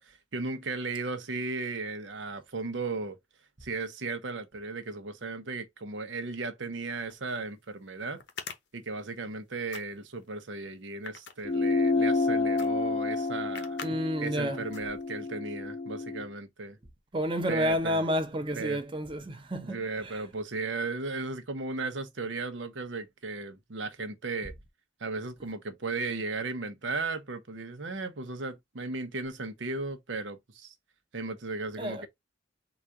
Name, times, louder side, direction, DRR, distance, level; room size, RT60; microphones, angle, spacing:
voice 1, 0.0-3.2 3.6-8.2 8.7-13.8 14.2-16.8 17.5-18.0 18.6-18.8 19.6-24.5 25.0-30.7 31.1-32.1, right 3 dB, 85° right, 0.8 m, -36 dB
sound 1, 7.1-7.2 8.2-9.4 9.7-10.2 10.8-12.0 12.6-12.7 13.0-13.1 13.5-13.9 14.3-14.4 14.7-15.3, left 6 dB, 65° left, 0.8 m, -43 dB
sound 2, 11.4-16.3, left 3 dB, 30° left, 0.6 m, -29 dB
voice 2, 13.8-14.6 17.1-20.1 31.8-32.1, equal, 30° right, 0.8 m, -30 dB
4.0 x 2.4 x 4.6 m
head